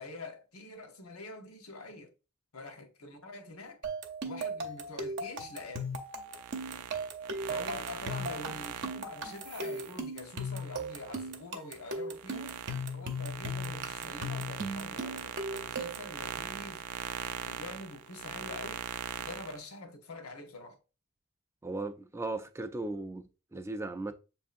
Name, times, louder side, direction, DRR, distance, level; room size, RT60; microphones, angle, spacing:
voice 1, 0.0-2.1 2.5-3.8 4.2-5.9 7.5-12.5 12.9-16.9 17.4-18.8 19.2-20.8, left 2 dB, 80° left, 1.0 m, -45 dB
sound 1, 3.8-16.1, right 1 dB, 55° right, 0.7 m, -37 dB
sound 2, 6.2-11.3 11.7-19.6, right 9 dB, 90° right, 0.4 m, -41 dB
voice 2, 21.6-24.1, right 2 dB, 10° right, 0.4 m, -37 dB
7.1 x 2.7 x 2.5 m
head